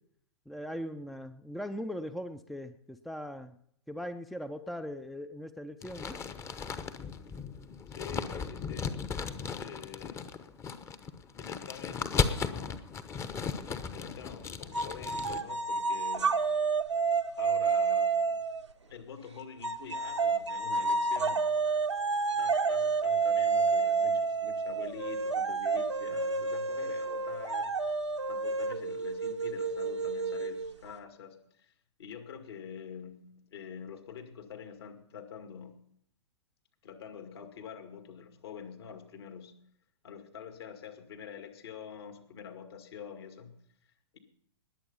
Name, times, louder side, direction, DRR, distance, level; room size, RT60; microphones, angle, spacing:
voice 1, 0.5-3.6 3.9-6.2, equal, ahead, 10 dB, 0.5 m, -40 dB
sound 1, 5.8-15.4, left 5 dB, 20° left, 0.9 m, -36 dB
voice 2, 7.9-9.1 9.6-10.3 11.4-12.9 13.9-16.4 17.3-18.4 18.9-21.5 22.4-27.7 28.3-31.7 32.0-35.8 36.8-39.6 40.0-43.5 44.1-44.2, left 7 dB, 60° left, 7 dB, 2.2 m, -46 dB
sound 2, 14.7-18.6 19.6-30.9, right 4 dB, 80° right, 0.9 m, -29 dB
20.0 x 7.8 x 5.6 m, 0.67 s
figure-of-eight pair, 110°, 15 cm